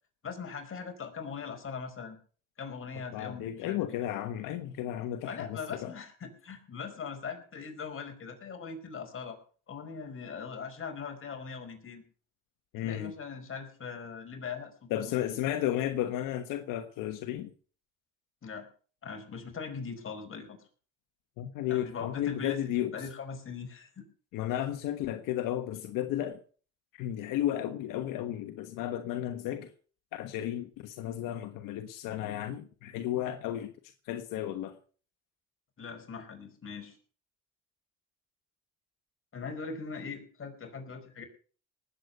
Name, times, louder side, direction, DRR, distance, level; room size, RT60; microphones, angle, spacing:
voice 1, 0.2-2.2 2.6-4.2 5.3-9.4 9.7-12.0 12.8-15.2 18.4-18.7 19.0-20.6 21.7-24.1 35.8-37.0 39.3-41.2, left 5 dB, 40° left, 5 dB, 5.1 m, -41 dB
voice 2, 3.1-5.9 12.7-13.1 14.9-17.5 21.4-22.9 24.3-26.4 26.9-29.7 30.1-33.7 34.1-34.7, left 12 dB, 80° left, 8 dB, 1.4 m, -33 dB
19.0 x 8.4 x 6.7 m, 0.42 s
cardioid pair, 90°, 32 cm